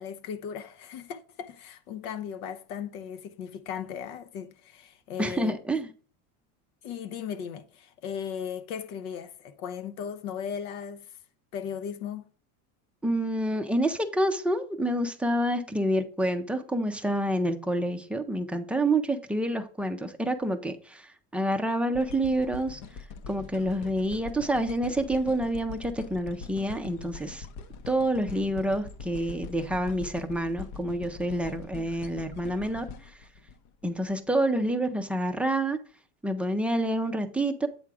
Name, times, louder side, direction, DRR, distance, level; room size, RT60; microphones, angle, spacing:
voice 1, 0.0-5.6 6.8-11.2 11.5-12.3, left 7 dB, 85° left, 1.0 m, -37 dB
voice 2, 5.2-5.9 13.0-22.8 23.3-27.5 27.9-33.1 33.8-35.8 36.2-37.7, right 1 dB, 5° right, 0.4 m, -28 dB
sound 1, 21.9-34.1 34.7-34.8, left 4 dB, 60° left, 0.9 m, -43 dB
8.4 x 3.6 x 4.7 m
supercardioid pair, 130°, 43 cm